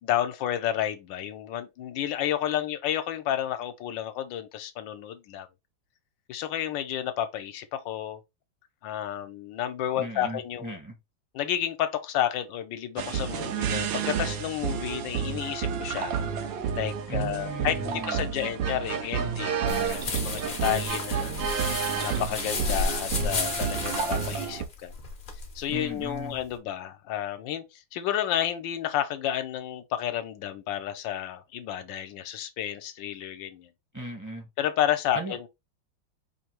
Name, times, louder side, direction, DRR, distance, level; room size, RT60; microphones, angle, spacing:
voice 1, 0.0-5.5 6.3-8.2 8.8-10.8 11.3-16.1 16.7-21.3 22.0-24.9 25.5-33.7 34.6-35.5, left 11 dB, 75° left, 1.3 m, -31 dB
voice 2, 10.0-10.9 17.1-18.5 25.7-26.4 33.9-34.5 35.1-35.4, right 1 dB, 15° right, 0.7 m, -37 dB
sound 1, 13.0-24.7, right 7 dB, 80° right, 1.4 m, -30 dB
sound 2, 19.7-26.5, left 4 dB, 45° left, 0.6 m, -33 dB
4.9 x 2.7 x 3.0 m
omnidirectional pair, 2.1 m